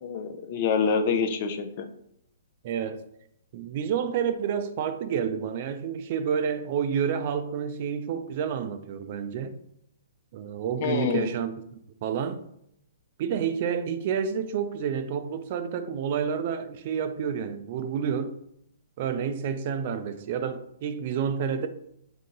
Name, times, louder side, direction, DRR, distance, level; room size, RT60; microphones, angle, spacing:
voice 1, 0.0-1.9 10.8-11.3, left 5 dB, 45° left, 0.5 m, -26 dB
voice 2, 2.6-3.0 3.5-9.6 10.3-12.4 13.2-18.4 19.0-21.7, right 7 dB, 45° right, 0.4 m, -29 dB
3.7 x 2.8 x 3.8 m
hypercardioid pair, 150°, 0 cm